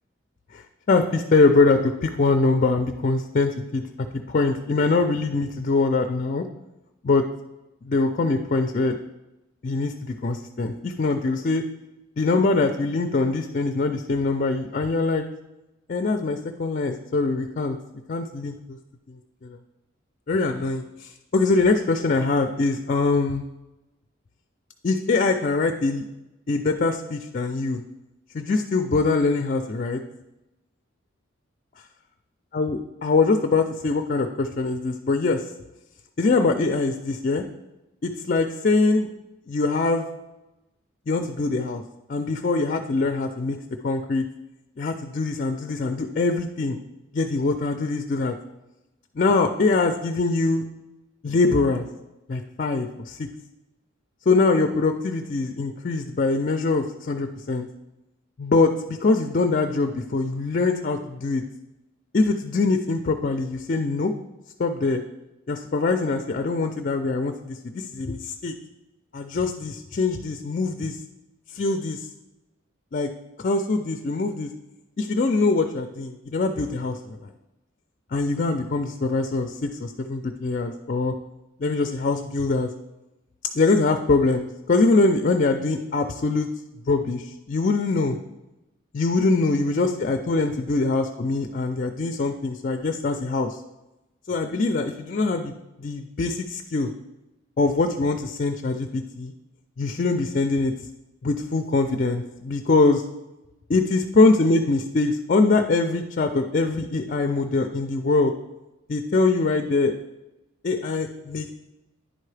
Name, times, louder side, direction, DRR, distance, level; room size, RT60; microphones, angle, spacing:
voice 1, 0.5-3.8 4.3-6.4 7.0-7.2 7.8-9.0 9.6-11.6 12.2-15.2 15.9-17.8 18.1-18.8 19.1-19.6 20.3-23.4 24.8-26.0 26.5-27.8 28.3-30.0 32.5-35.4 36.2-37.4 38.0-39.1 39.5-40.1 41.1-41.8 42.1-43.6 43.8-44.2 44.8-46.8 47.1-48.3 49.2-50.7 51.2-51.9 52.3-53.3 54.3-57.7 58.4-61.4 62.1-64.1 64.6-65.0 65.5-68.5 69.1-71.0 71.5-72.1 72.9-73.1 73.4-74.5 75.0-77.3 78.1-81.1 81.6-82.7 83.5-86.5 86.9-88.2 88.9-93.6 94.3-95.5 95.8-96.9 97.6-99.3 99.8-100.7 101.2-103.0 103.7-108.3 108.9-109.9 110.6-111.5, left 3 dB, 40° left, 6 dB, 0.4 m, -23 dB
10.0 x 4.6 x 3.3 m, 0.98 s
head